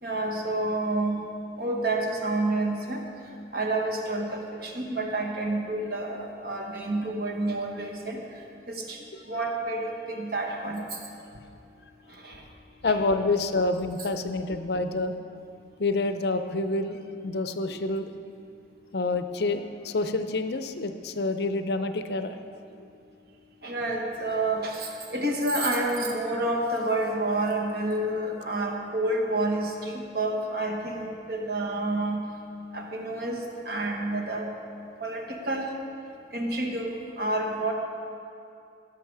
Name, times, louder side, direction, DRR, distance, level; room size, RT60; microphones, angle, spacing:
voice 1, 0.0-1.2 1.6-3.0 3.5-8.2 8.7-11.0 12.1-12.4 17.7-17.8 23.6-32.3 32.7-34.5 35.0-35.7 36.3-37.7, right 2 dB, 55° right, 1 dB, 1.3 m, -29 dB
voice 2, 12.8-15.1 15.8-18.1 18.9-22.4, left 2 dB, 60° left, 8 dB, 0.6 m, -28 dB
16.0 x 6.7 x 4.8 m, 2.5 s
head